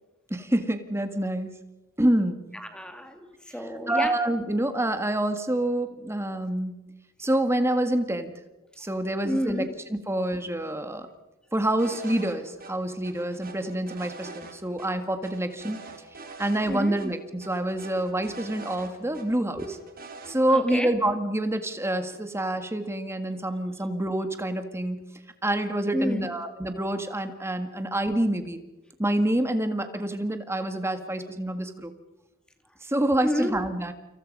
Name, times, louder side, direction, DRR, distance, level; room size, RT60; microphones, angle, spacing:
voice 1, 0.3-1.5 2.0-2.4 3.9-6.7 7.2-8.3 8.8-9.7 9.9-11.1 11.5-15.8 16.4-19.8 20.3-25.0 25.4-28.6 29.0-31.9 32.8-33.9, right 1 dB, 10° right, 8 dB, 1.8 m, -27 dB
voice 2, 2.5-3.2 3.5-4.1 9.2-9.7 16.7-17.0 20.5-20.9 25.9-26.3 33.2-33.6, equal, 5° left, 6 dB, 2.3 m, -29 dB
sound 1, 11.8-12.3 12.6-12.7 13.0-14.5 14.8-14.9 15.2-16.7 17.0-17.1 17.4-19.2 19.6-20.4, right 3 dB, 40° right, 4.0 m, -43 dB
29.0 x 27.0 x 5.4 m, 1.0 s
head